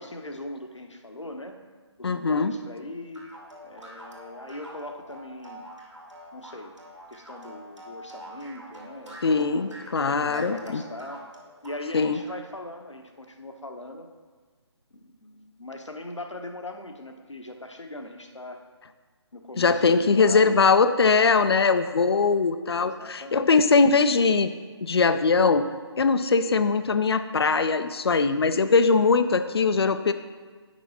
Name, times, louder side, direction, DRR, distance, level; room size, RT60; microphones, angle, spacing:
voice 1, 0.0-1.6 2.0-3.3 3.6-5.7 6.3-6.8 7.1-11.3 11.6-14.1 14.9-18.6 19.3-20.6 22.7-23.5, left 1 dB, 85° left, 5 dB, 1.0 m, -40 dB
voice 2, 2.0-2.5 9.2-10.8 11.9-12.2 19.6-24.5 24.8-25.6 26.0-30.1, left 4 dB, 60° left, 11 dB, 0.5 m, -21 dB
sound 1, 3.1-12.4, equal, 85° right, 2.2 m, -45 dB
9.0 x 6.0 x 4.2 m, 1.5 s
figure-of-eight pair, 150°, 15 cm